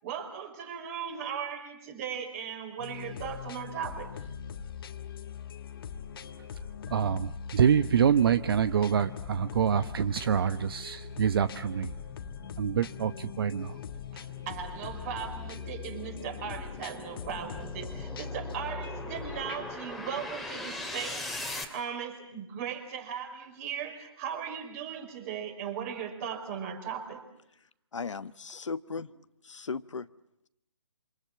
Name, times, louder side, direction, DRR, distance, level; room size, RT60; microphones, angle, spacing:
voice 1, 0.0-4.1 14.1-27.2, right 8 dB, 30° right, 8 dB, 4.9 m, -38 dB
sound 1, 2.8-19.8, left 6 dB, 50° left, 1.7 m, -41 dB
voice 2, 6.9-11.9 12.6-13.8, right 8 dB, 50° right, 12 dB, 1.0 m, -26 dB
sound 2, 9.3-21.6, left 1 dB, ahead, 2.7 m, -43 dB
voice 3, 27.9-29.1 29.4-30.1, left 5 dB, 75° left, 14 dB, 1.2 m, -36 dB
28.0 x 27.0 x 7.4 m, 0.80 s
figure-of-eight pair, 150°, 16 cm